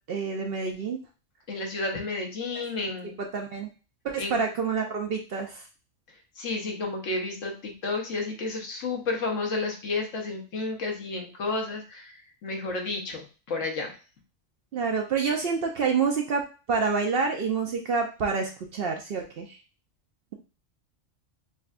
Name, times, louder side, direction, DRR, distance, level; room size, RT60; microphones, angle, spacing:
voice 1, 0.1-1.0 3.2-3.7 4.0-5.6 14.7-16.4 16.7-19.6, right 5 dB, 60° right, 3 dB, 0.6 m, -27 dB
voice 2, 1.5-3.1 4.2-4.3 6.4-12.2 12.4-13.9, left 3 dB, 75° left, 2 dB, 1.2 m, -31 dB
5.3 x 2.2 x 2.4 m, 0.34 s
omnidirectional pair, 1.3 m